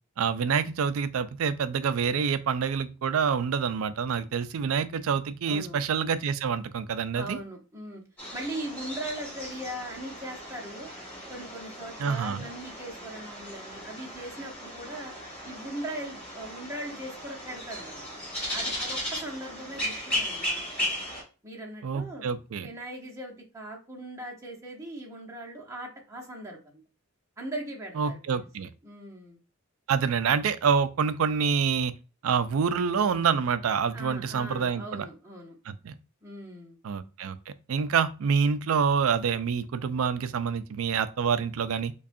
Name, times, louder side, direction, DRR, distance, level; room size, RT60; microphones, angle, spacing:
voice 1, 0.2-7.4 12.0-12.4 21.8-22.7 28.0-28.7 29.9-31.9 32.2-35.1 35.7-36.0 36.8-41.9, right 6 dB, 80° right, 0.4 m, -27 dB
voice 2, 5.5-5.8 7.1-8.0 8.3-10.9 11.3-15.1 15.4-18.0 18.5-21.0 21.4-22.3 22.6-26.8 27.4-29.4 33.9-35.6 36.2-36.8, right 1 dB, 15° right, 0.9 m, -40 dB
sound 1, 8.2-21.2, equal, 10° left, 1.9 m, -36 dB
4.8 x 2.3 x 2.6 m
head